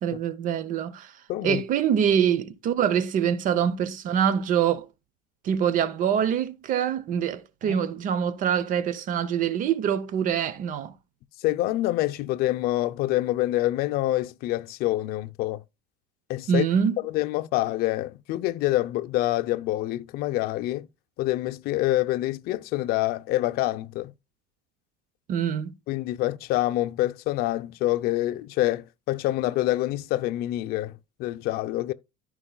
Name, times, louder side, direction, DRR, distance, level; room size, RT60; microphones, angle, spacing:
voice 1, 0.0-1.1 1.4-4.8 5.4-10.9 16.5-17.0 25.3-25.7, right 8 dB, 50° right, 0.8 m, -25 dB
voice 2, 1.3-1.6 7.6-7.8 11.4-15.6 16.3-16.7 17.0-20.9 21.2-24.1 25.9-30.9 31.2-31.9, left 16 dB, 60° left, 0.6 m, -26 dB
14.0 x 4.8 x 2.3 m
cardioid pair, 120°, 18 cm